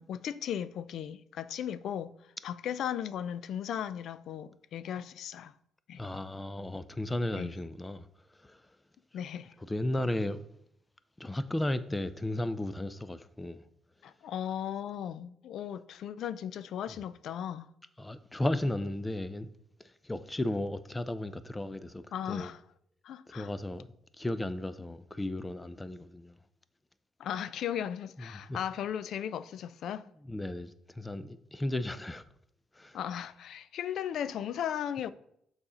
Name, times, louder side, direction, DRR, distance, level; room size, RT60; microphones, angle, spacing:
voice 1, 0.0-5.5 5.9-6.0 7.3-7.5 9.1-9.5 14.0-17.7 22.1-22.6 23.0-23.5 27.2-30.1 32.9-35.1, left 9 dB, 75° left, 0.4 m, -36 dB
voice 2, 6.0-8.1 8.4-8.6 9.6-10.5 11.2-13.6 18.0-19.5 19.8-22.5 23.3-26.4 28.2-28.6 30.2-32.2 32.7-33.0, left 1 dB, 15° left, 0.5 m, -35 dB
7.0 x 4.2 x 5.0 m
cardioid pair, 90°, 0 cm